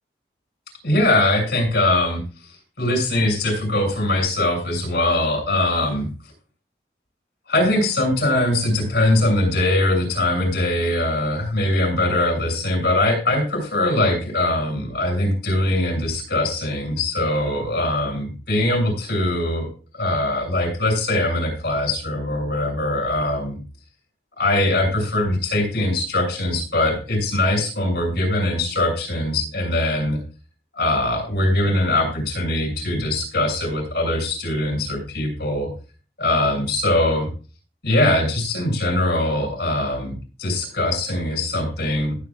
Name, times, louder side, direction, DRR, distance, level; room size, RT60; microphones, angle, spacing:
voice 1, 0.8-2.2 2.8-6.1 7.5-19.7 19.9-23.6 24.4-30.2 30.7-35.7 36.2-37.3 37.8-42.2, left 1 dB, 65° left, 2 dB, 7.0 m, -21 dB
19.5 x 8.1 x 2.5 m, 0.37 s
head